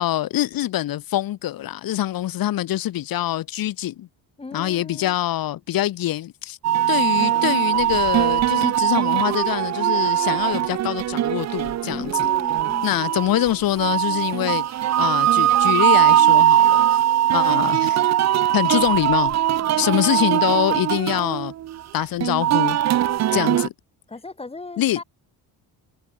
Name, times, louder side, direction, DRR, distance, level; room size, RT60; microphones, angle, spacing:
voice 1, 0.0-4.1 4.5-6.6 6.9-12.1 12.8-14.7 15.0-17.0 17.3-18.0 18.5-19.4 19.8-21.5 21.9-22.8 23.3-23.7 24.8-25.0, left 13 dB, 55° left, 1.7 m, -24 dB
voice 2, 4.4-5.1 11.9-13.0 19.6-20.6 24.1-25.0, left 3 dB, 15° left, 5.8 m, -38 dB
sound 1, 6.6-23.7, right 12 dB, 40° right, 0.7 m, -20 dB
sound 2, 7.7-23.2, right 4 dB, 20° right, 4.3 m, -52 dB
cardioid pair, 165°, 40 cm